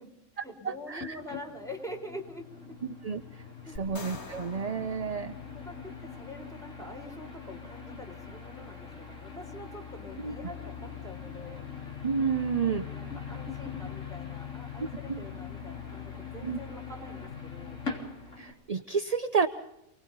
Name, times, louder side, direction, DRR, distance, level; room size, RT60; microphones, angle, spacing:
voice 1, 0.0-2.8 3.6-3.8 5.5-11.6 12.7-17.8, left 1 dB, 5° left, 2 dB, 4.0 m, -45 dB
voice 2, 0.6-1.2 2.8-3.2 3.8-5.3 10.2-10.3 12.0-12.8 15.1-15.2 16.4-16.6 18.4-19.5, right 6 dB, 35° right, 8 dB, 0.9 m, -30 dB
sound 1, 1.0-18.5, left 6 dB, 90° left, 4.1 m, -42 dB
sound 2, 3.8-6.1, left 3 dB, 65° left, 2.3 m, -46 dB
28.5 x 20.0 x 5.5 m, 0.82 s
omnidirectional pair, 1.3 m